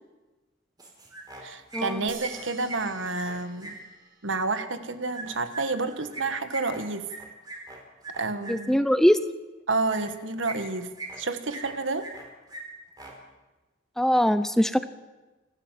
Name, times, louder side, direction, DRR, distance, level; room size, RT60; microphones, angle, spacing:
sound 1, 0.8-1.4 1.7-3.7 5.1-8.5 9.9-10.1 10.4-11.2 11.5-12.2 12.5-12.6 12.9-13.1, right 2 dB, 20° right, 4.0 m, -40 dB
voice 1, 1.4-3.8 4.2-7.1 8.2-8.8 9.7-12.1, right 3 dB, 75° right, 10 dB, 1.5 m, -30 dB
sound 2, 2.1-4.8, right 5 dB, 45° right, 4.6 m, -49 dB
voice 2, 8.5-9.2 14.0-14.8, equal, ahead, 12 dB, 0.6 m, -22 dB
29.0 x 12.0 x 7.6 m, 1.1 s
head